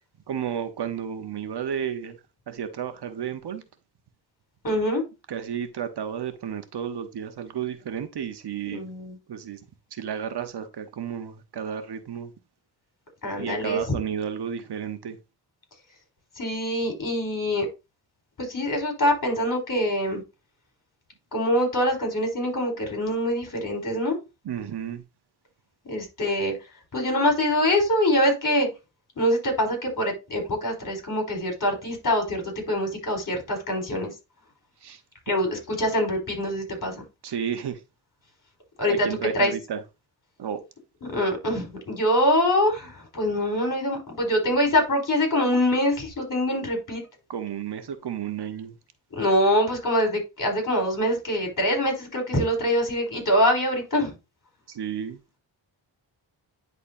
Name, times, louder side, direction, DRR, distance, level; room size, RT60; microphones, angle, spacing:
voice 1, 0.3-2.2 2.5-3.6 5.3-8.9 9.3-9.6 9.9-12.3 13.4-15.2 24.4-25.0 34.8-35.0 36.8-37.0 37.2-37.8 38.9-39.8 40.4-40.6 46.6-46.7 47.3-48.7 54.7-55.2, right 8 dB, 60° right, 1.1 m, -32 dB
voice 2, 4.6-5.0 8.7-9.2 13.2-13.8 16.4-17.7 18.4-20.2 21.3-24.2 25.8-26.5 26.9-28.7 29.2-32.4 32.7-34.1 35.3-36.9 38.8-39.1 39.3-39.5 41.0-47.0 49.2-54.1, left 1 dB, 45° left, 4.1 m, -24 dB
10.5 x 4.1 x 2.7 m
cardioid pair, 80°, 45 cm